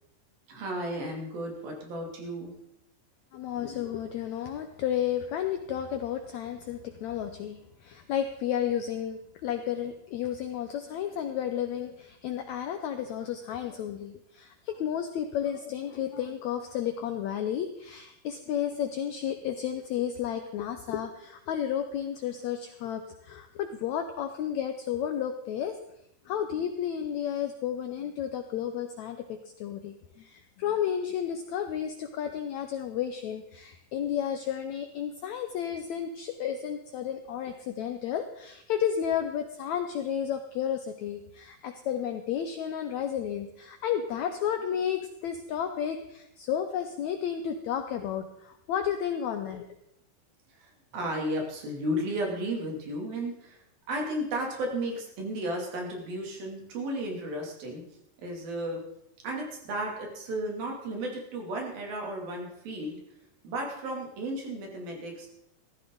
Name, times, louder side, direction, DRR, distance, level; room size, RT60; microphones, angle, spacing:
voice 1, 0.5-2.5 50.6-53.6 53.9-57.8 58.2-58.8 59.2-63.0 63.4-65.3, right 1 dB, 75° right, 0 dB, 4.5 m, -34 dB
voice 2, 3.3-25.8 26.3-49.7, left 9 dB, 80° left, 7 dB, 1.6 m, -32 dB
14.5 x 14.0 x 3.9 m, 0.81 s
omnidirectional pair, 4.2 m